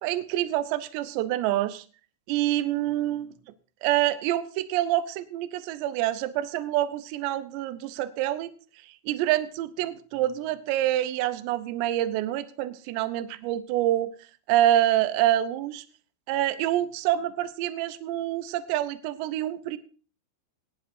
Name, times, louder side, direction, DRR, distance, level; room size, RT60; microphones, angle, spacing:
voice 1, 0.0-1.8 2.3-3.3 3.8-8.5 9.0-14.1 14.5-15.8 16.3-19.8, right 13 dB, 85° right, 12 dB, 2.5 m, -26 dB
20.0 x 11.0 x 2.6 m, 0.38 s
omnidirectional pair, 5.9 m